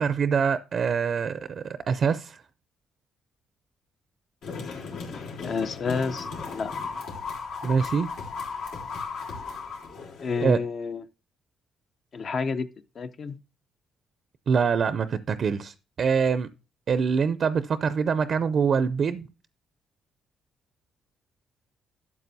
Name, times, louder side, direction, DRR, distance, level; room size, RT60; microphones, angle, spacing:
voice 1, 0.0-2.4 7.6-8.1 10.4-10.6 14.5-16.5 16.9-19.3, right 6 dB, 55° right, 0.5 m, -24 dB
sound 1, 4.4-10.4, left 5 dB, 90° left, 3.4 m, -36 dB
voice 2, 5.4-6.7 10.2-11.0 12.1-12.7 13.0-13.4, left 5 dB, 50° left, 0.6 m, -29 dB
12.0 x 7.2 x 2.7 m
cardioid pair, 90°, 0 cm